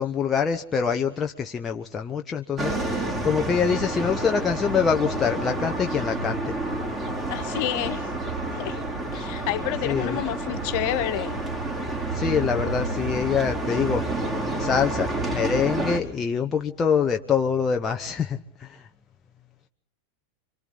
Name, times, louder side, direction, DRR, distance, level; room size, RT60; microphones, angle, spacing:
voice 1, 0.0-6.6 9.8-10.2 12.1-14.0 14.5-18.9, left 6 dB, 20° left, 4 dB, 1.0 m, -25 dB
sound 1, 2.6-16.0, right 2 dB, 20° right, 3.6 m, -29 dB
voice 2, 7.3-8.1 8.5-8.8 9.1-11.4, left 13 dB, 50° left, 9 dB, 1.8 m, -29 dB
30.0 x 24.5 x 4.0 m, 0.65 s
figure-of-eight pair, 90°, 0 cm